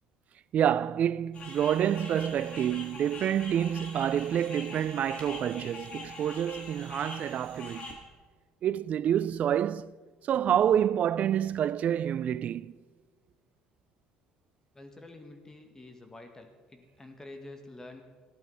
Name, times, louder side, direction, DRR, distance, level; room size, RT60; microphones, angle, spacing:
voice 1, 0.5-8.0 8.6-9.9 10.3-12.7, right 10 dB, 50° right, 0.4 m, -28 dB
sound 1, 1.3-7.9, left 3 dB, 40° left, 3.5 m, -44 dB
voice 2, 14.7-18.0, left 2 dB, 20° left, 1.9 m, -48 dB
15.0 x 11.5 x 5.6 m
hypercardioid pair, 65°, 3 cm